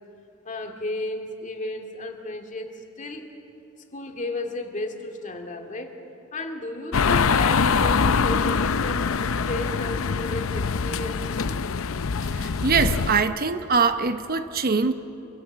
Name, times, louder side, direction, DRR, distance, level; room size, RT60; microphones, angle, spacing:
voice 1, 0.4-3.3 3.9-6.0 6.3-11.6, left 2 dB, 40° left, 4 dB, 2.4 m, -33 dB
sound 1, 6.9-13.2, left 5 dB, 75° left, 0.6 m, -24 dB
voice 2, 12.3-14.9, right 5 dB, 45° right, 10 dB, 0.8 m, -23 dB
27.5 x 24.5 x 7.5 m, 3.0 s
head